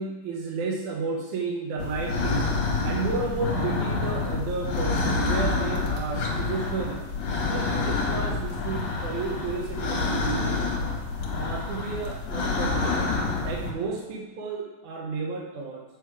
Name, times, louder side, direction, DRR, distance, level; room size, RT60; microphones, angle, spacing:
voice 1, 0.0-2.5 2.8-7.0 7.5-10.6 11.3-13.1 13.4-15.8, right 4 dB, 70° right, -1 dB, 2.2 m, -32 dB
sound 1, 1.8-13.7, left 3 dB, 60° left, 2.4 m, -28 dB
8.3 x 6.5 x 4.8 m, 1.2 s
omnidirectional pair, 3.8 m